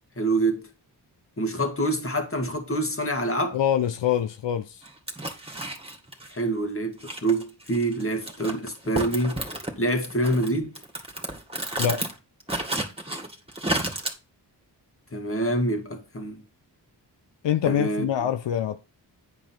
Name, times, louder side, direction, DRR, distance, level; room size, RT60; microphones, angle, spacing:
voice 1, 0.2-0.7 1.4-3.6 6.3-9.4 9.8-10.8 15.1-16.4 17.6-18.1, right 1 dB, 30° left, 2.0 m, -26 dB
voice 2, 3.5-4.8 11.8-12.1 17.4-18.8, left 9 dB, 80° left, 0.6 m, -25 dB
sound 1, 4.8-6.4 7.0-9.7 10.0-12.1 12.4-14.1, right 1 dB, 15° right, 2.0 m, -31 dB
9.7 x 4.9 x 4.4 m
cardioid pair, 60°, 43 cm